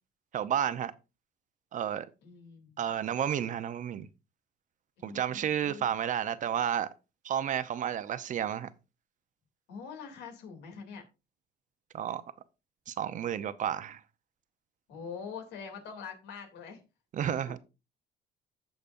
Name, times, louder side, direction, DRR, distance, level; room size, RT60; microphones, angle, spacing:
voice 1, 0.3-0.9 1.7-2.1 2.8-4.1 5.0-6.9 7.2-8.7 11.9-12.2 12.9-14.0 17.1-17.6, right 9 dB, 50° right, 0.8 m, -31 dB
voice 2, 2.2-2.8 5.0-5.9 9.7-11.0 14.9-16.8, left 6 dB, 85° left, 2.8 m, -44 dB
15.0 x 5.2 x 2.6 m
cardioid pair, 110°, 17 cm